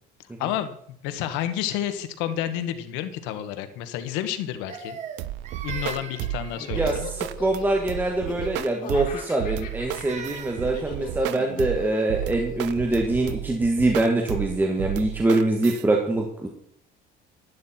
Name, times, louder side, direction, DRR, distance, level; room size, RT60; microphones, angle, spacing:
voice 1, 0.4-0.8 1.0-5.0 5.6-7.1 11.3-11.7, left 11 dB, 90° left, 10 dB, 1.5 m, -30 dB
Crying sobbing, 4.7-7.2 9.4-10.9, right 6 dB, 40° right, 1.6 m, -40 dB
sound 1, 5.2-15.8, right 14 dB, 70° right, 0.7 m, -33 dB
Laughter, 5.8-14.2, left 6 dB, 45° left, 3.4 m, -40 dB
voice 2, 6.8-16.5, right 2 dB, 10° right, 1 dB, 1.6 m, -24 dB
12.0 x 11.5 x 4.4 m, 0.65 s
cardioid pair, 150°, 19 cm